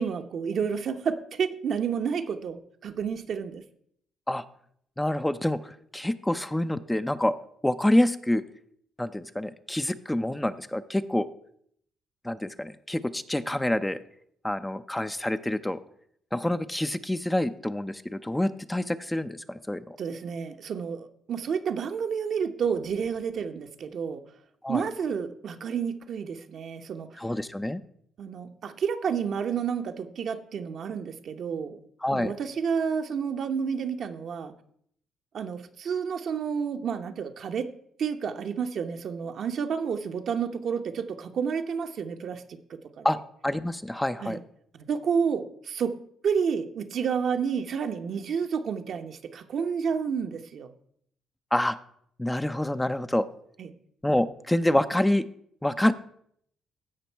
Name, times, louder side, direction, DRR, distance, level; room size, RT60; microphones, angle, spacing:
voice 1, 0.0-3.6 20.0-24.2 24.7-27.2 28.2-31.8 32.1-34.5 35.3-37.7 38.0-43.2 44.2-44.4 44.7-46.0 46.2-50.7 53.6-53.7, right 6 dB, 65° right, 6 dB, 0.9 m, -30 dB
voice 2, 5.0-7.3 7.6-8.4 9.0-11.3 12.2-14.0 14.4-15.8 16.3-20.0 24.6-24.8 27.2-27.8 32.0-32.3 43.0-43.2 43.4-44.4 51.5-51.8 52.2-53.3 54.0-55.3 55.6-55.9, left 1 dB, 10° left, 10 dB, 0.5 m, -27 dB
15.5 x 5.2 x 4.5 m, 0.67 s
supercardioid pair, 70°, 0 cm